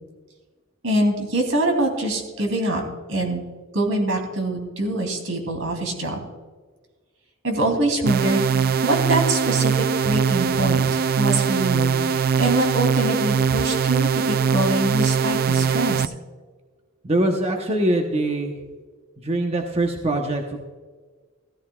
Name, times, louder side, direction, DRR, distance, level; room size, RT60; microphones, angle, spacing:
voice 1, 0.8-2.8 3.1-3.4 3.7-6.2 7.4-16.1, right 1 dB, 80° right, 2 dB, 3.0 m, -24 dB
sound 1, 8.1-16.1, right 6 dB, 50° right, 0.4 m, -21 dB
voice 2, 17.0-18.5 19.2-20.6, right 1 dB, 30° right, 2 dB, 1.0 m, -23 dB
16.0 x 14.0 x 2.4 m, 1.4 s
head